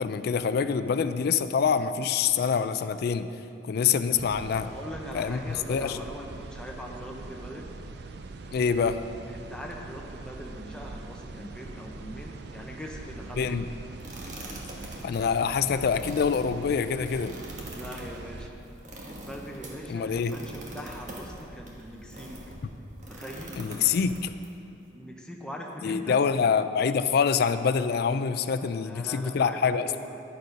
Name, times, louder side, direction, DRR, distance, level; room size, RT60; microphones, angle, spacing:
voice 1, 0.0-3.3 3.7-4.7 5.1-5.4 5.7-6.0 8.5-9.0 13.4-13.7 15.0-17.4 19.9-20.4 23.6-24.3 25.8-29.9, left 6 dB, 55° left, 11 dB, 0.3 m, -25 dB
sound 1, 4.1-18.5, right 3 dB, 60° right, 0.4 m, -43 dB
voice 2, 4.6-7.8 9.3-13.5 17.7-18.6 19.1-22.4 23.1-23.6 24.9-26.2 28.7-30.2, equal, 5° left, 0 dB, 0.8 m, -41 dB
sound 2, 13.1-24.2, right 1 dB, 90° right, 1.1 m, -50 dB
sound 3, 14.0-22.6 23.0-24.5, right 1 dB, 40° right, 1.3 m, -44 dB
9.6 x 6.6 x 5.2 m, 2.8 s
head